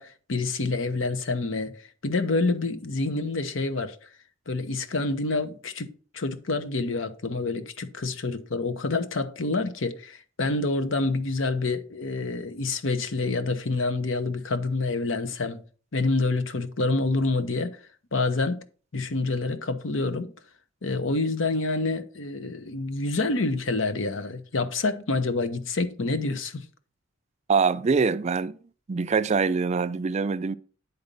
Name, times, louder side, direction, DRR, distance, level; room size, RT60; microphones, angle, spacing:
voice 1, 0.0-4.0 4.5-5.9 6.1-15.6 15.9-17.8 18.1-18.6 18.9-20.3 20.8-26.6, left 3 dB, 75° left, 0.9 m, -27 dB
voice 2, 27.5-28.6 28.9-30.6, right 5 dB, 35° right, 0.4 m, -24 dB
9.6 x 4.0 x 5.3 m
head